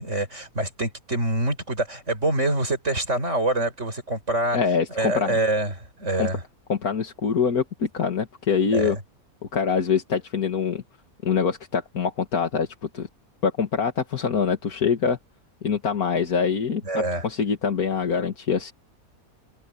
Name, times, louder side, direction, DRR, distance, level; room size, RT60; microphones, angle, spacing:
voice 1, 0.0-4.6 5.0-6.4 8.7-9.0 16.8-17.2, right 2 dB, 55° right, 6.4 m, -25 dB
voice 2, 4.5-5.4 6.2-6.3 6.7-9.0 9.5-10.8 11.2-12.7 12.9-13.1 13.4-15.2 15.6-18.7, left 6 dB, 85° left, 2.4 m, -24 dB
open air
omnidirectional pair, 1.5 m